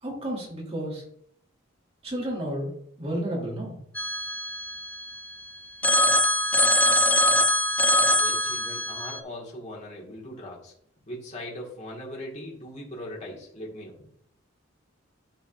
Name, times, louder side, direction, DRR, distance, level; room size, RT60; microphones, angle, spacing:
voice 1, 0.0-1.0 2.0-2.7 3.0-3.8, right 1 dB, 30° right, -3 dB, 2.5 m, -31 dB
Telephone, 3.9-5.3 5.8-9.2, left 1 dB, 10° left, 0.4 m, -23 dB
voice 2, 8.1-10.7 11.1-14.1, left 1 dB, 35° left, -3 dB, 2.2 m, -40 dB
12.0 x 4.1 x 2.7 m, 0.67 s
head